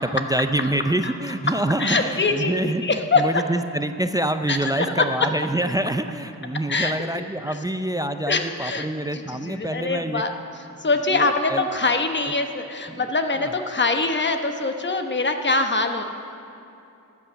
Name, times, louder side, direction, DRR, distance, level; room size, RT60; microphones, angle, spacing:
voice 1, 0.0-10.2 11.1-11.7 12.9-13.0 13.4-13.5, right 1 dB, 10° right, 9 dB, 0.4 m, -26 dB
voice 2, 1.5-3.4 4.5-5.1 6.7-7.6 8.3-8.9 9.1-10.3 10.8-16.0, left 3 dB, 35° left, 6 dB, 1.0 m, -24 dB
13.0 x 8.4 x 6.9 m, 2.7 s
cardioid pair, 85°, 33 cm